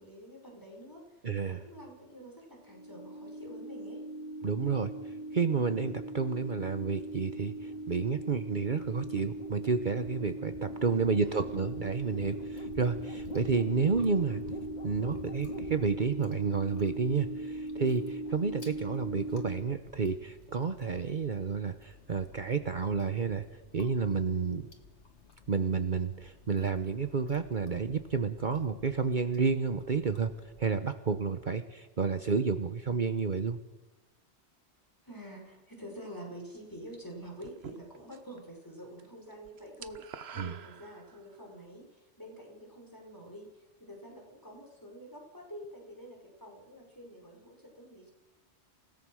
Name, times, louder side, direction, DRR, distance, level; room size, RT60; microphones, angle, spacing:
voice 1, 0.0-4.0 10.7-11.5 35.0-48.1, equal, 15° left, 0 dB, 5.4 m, -48 dB
voice 2, 1.2-1.6 4.4-14.4 14.8-23.5 23.7-24.7 25.5-33.6 40.4-40.5, right 5 dB, 45° right, 9 dB, 1.1 m, -30 dB
sound 1, 2.6-19.6, right 1 dB, 40° left, 3.0 m, -39 dB
Chewing mastication, 11.3-30.7, left 4 dB, 80° left, 2.3 m, -58 dB
sound 2, 37.4-38.4 38.7-39.1 39.3-41.4, right 7 dB, 65° right, 1.2 m, -47 dB
28.5 x 17.5 x 6.4 m, 1.1 s
omnidirectional pair, 1.1 m